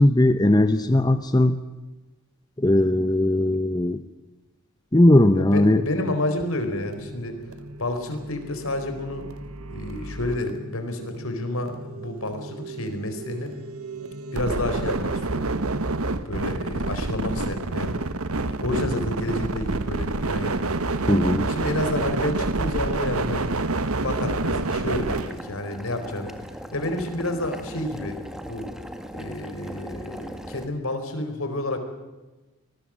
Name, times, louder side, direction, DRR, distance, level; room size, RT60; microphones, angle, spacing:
voice 1, 0.0-1.6 2.6-4.0 4.9-5.8 21.1-21.5, left 1 dB, 20° left, 10 dB, 0.8 m, -18 dB
voice 2, 5.3-7.4 7.8-9.3 9.7-13.5 14.3-15.5 16.2-18.0 18.6-20.7 21.4-26.3 26.7-28.2 28.5-28.7 29.1-31.8, left 1 dB, 75° left, 7 dB, 4.4 m, -30 dB
sound 1, 6.5-25.4, right 3 dB, 80° right, 1.3 m, -29 dB
Boiling, 25.0-30.7, equal, ahead, 1.7 m, -39 dB
26.0 x 20.0 x 7.6 m, 1.1 s
head